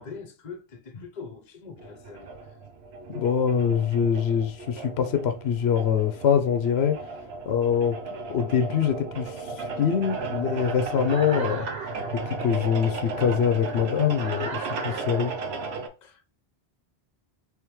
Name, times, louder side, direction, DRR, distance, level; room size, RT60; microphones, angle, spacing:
voice 1, 0.0-2.3 16.0-16.4, left 5 dB, 50° left, 0.8 m, -42 dB
sound 1, 1.8-15.9, right 3 dB, 85° right, 1.0 m, -35 dB
voice 2, 3.1-7.0 7.5-8.0 8.3-11.7 12.1-15.3, left 8 dB, 85° left, 0.9 m, -24 dB
sound 2, 10.0-15.7, right 4 dB, 50° right, 0.7 m, -38 dB
3.5 x 3.4 x 3.0 m
omnidirectional pair, 1.1 m